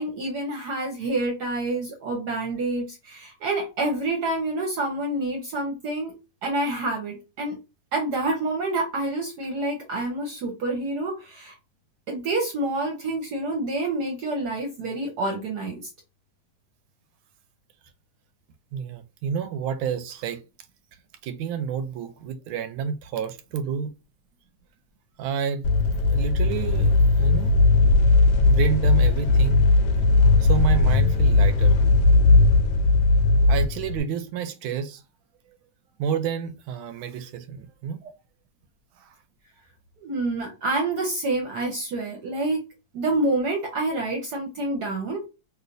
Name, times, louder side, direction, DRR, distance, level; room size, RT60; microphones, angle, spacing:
voice 1, 0.0-6.1 6.4-7.6 7.9-11.5 12.1-15.9 40.0-42.6 42.9-45.3, right 2 dB, 65° right, 1.1 m, -27 dB
voice 2, 18.7-20.4 21.2-23.9 25.2-25.7 26.1-27.5 28.4-29.7 30.4-31.8 33.5-35.0 35.5-35.6 36.0-38.0 39.0-39.1, right 7 dB, 85° right, 1.4 m, -29 dB
sound 1, 25.6-34.0, left 3 dB, 70° left, 1.0 m, -18 dB
3.2 x 2.8 x 2.5 m
omnidirectional pair, 2.2 m